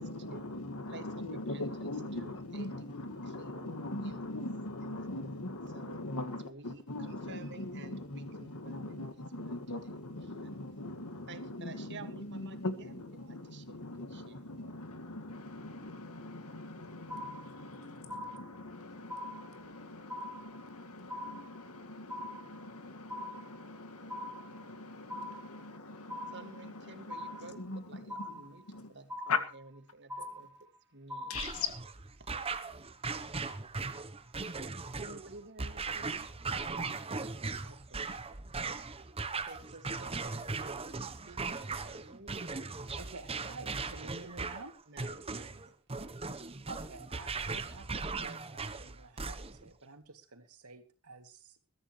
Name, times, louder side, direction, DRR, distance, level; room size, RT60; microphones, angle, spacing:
voice 1, 0.0-28.4 28.7-28.9 29.3-29.4 31.3-31.7, left 2 dB, 80° left, 2.0 m, -41 dB
voice 2, 0.9-2.9 3.2-4.4 4.8-5.2 5.7-10.6 11.3-14.4 26.3-31.4 32.2-32.3 34.9-36.3 37.6-38.4 39.3-42.7 44.9-45.8, right 3 dB, 50° right, 2.0 m, -52 dB
sound 1, 17.1-17.8 18.1-18.8 19.1-19.8 20.1-20.8 21.1-21.8 22.1-22.8 23.1-23.8 24.1-24.8 25.1-25.8 26.1-26.8 27.1-27.8 28.1-28.8 29.1-29.8 30.1-30.8 31.1-31.8, left 1 dB, 10° right, 1.9 m, -43 dB
sound 2, 31.3-49.7, right 4 dB, 25° right, 1.0 m, -39 dB
voice 3, 43.0-44.7 46.7-51.6, right 3 dB, 85° right, 2.6 m, -50 dB
21.5 x 13.5 x 3.2 m
head